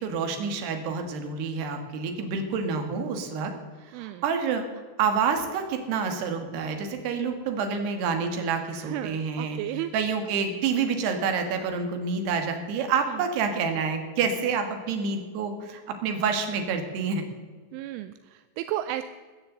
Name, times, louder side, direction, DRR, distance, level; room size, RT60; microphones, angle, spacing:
voice 1, 0.0-3.5 4.0-4.7 5.0-9.6 9.9-17.2, right 5 dB, 65° right, 5 dB, 3.6 m, -28 dB
voice 2, 3.9-4.2 8.7-9.9 13.1-13.2 17.7-19.0, right 14 dB, 85° right, 11 dB, 3.0 m, -33 dB
17.5 x 13.5 x 4.0 m, 1.5 s
omnidirectional pair, 5.6 m